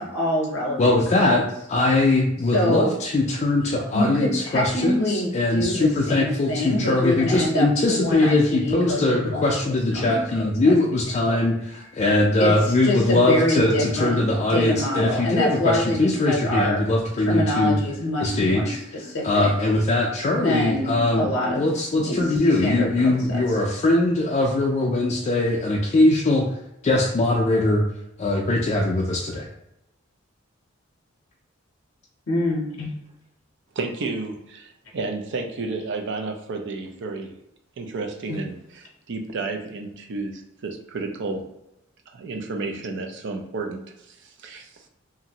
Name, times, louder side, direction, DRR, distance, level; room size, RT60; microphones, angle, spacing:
voice 1, 0.1-1.5 2.5-2.9 3.9-10.2 10.6-10.7 11.3-11.4 12.4-14.2 14.5-16.8 17.2-19.5 20.3-21.6 21.9-22.3 22.6-23.1 32.3-32.9 38.3-38.4, left 1 dB, 85° left, -1 dB, 0.7 m, -25 dB
voice 2, 0.8-1.4 1.7-17.8 18.2-18.8 19.2-21.3 21.5-26.5 26.8-27.8 28.2-29.5, left 2 dB, 35° left, -2 dB, 0.3 m, -21 dB
voice 3, 33.8-37.4 37.8-41.5 42.1-44.9, right 3 dB, 60° right, 4 dB, 0.4 m, -32 dB
2.9 x 2.5 x 2.7 m, 0.85 s
head